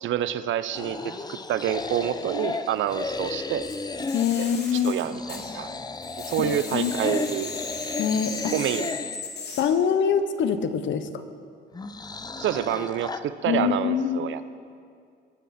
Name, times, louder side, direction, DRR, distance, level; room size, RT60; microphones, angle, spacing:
voice 1, 0.0-3.7 4.4-5.7 6.3-7.5 8.5-9.1 12.4-14.4, right 11 dB, 75° right, 14 dB, 0.6 m, -28 dB
sound 1, 0.7-4.4 5.0-9.2 11.7-13.2, left 3 dB, 20° left, 0.6 m, -34 dB
sound 2, 3.6-5.8 6.0-9.6, left 4 dB, 55° left, 2.5 m, -37 dB
voice 2, 4.1-5.0 6.4-7.1 8.0-8.5 9.6-11.2 13.5-14.3, left 7 dB, 75° left, 10 dB, 0.9 m, -25 dB
21.5 x 9.2 x 4.3 m, 2.3 s
cardioid pair, 90°, 20 cm